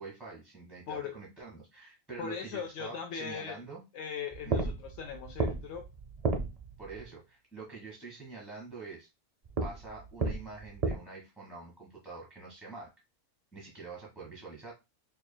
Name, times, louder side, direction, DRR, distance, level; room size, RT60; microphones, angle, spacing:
voice 1, 0.0-3.8 4.4-4.7 6.8-9.1 9.6-12.9 13.5-14.7, right 4 dB, ahead, -3 dB, 1.1 m, -46 dB
voice 2, 2.2-3.6 3.9-5.8, left 7 dB, 65° left, 5 dB, 0.7 m, -39 dB
sound 1, 4.3-7.1 9.4-10.9, right 3 dB, 90° right, 0.3 m, -33 dB
5.3 x 2.8 x 2.2 m, 0.25 s
omnidirectional pair, 1.6 m